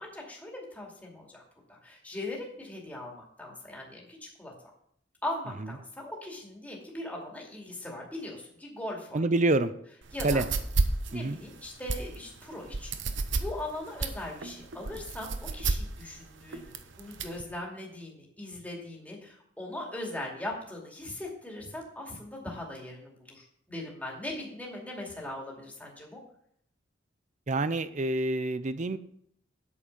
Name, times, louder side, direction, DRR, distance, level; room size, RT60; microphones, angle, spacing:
voice 1, 0.0-1.4 1.7-4.5 5.2-9.2 10.1-10.4 11.1-12.9 13.3-26.2, left 1 dB, 10° left, -2 dB, 2.5 m, -40 dB
voice 2, 9.1-9.7 10.2-10.4 11.1-11.4 27.5-29.0, right 2 dB, 40° right, 13 dB, 0.6 m, -27 dB
sound 1, 10.0-17.4, right 3 dB, 65° right, 0.9 m, -31 dB
8.4 x 7.7 x 5.5 m, 0.68 s
head